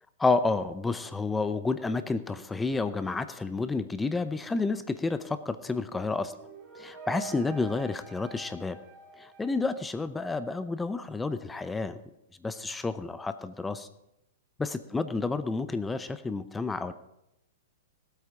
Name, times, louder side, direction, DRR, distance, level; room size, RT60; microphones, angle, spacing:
voice 1, 0.2-6.3 6.7-8.8 9.2-12.0 12.4-13.9 14.6-16.9, left 3 dB, 10° left, 12 dB, 0.6 m, -30 dB
sound 1, 6.2-10.1, right 5 dB, 25° right, 2.3 m, -45 dB
18.5 x 8.3 x 4.8 m, 0.86 s
hypercardioid pair, 125°, 0 cm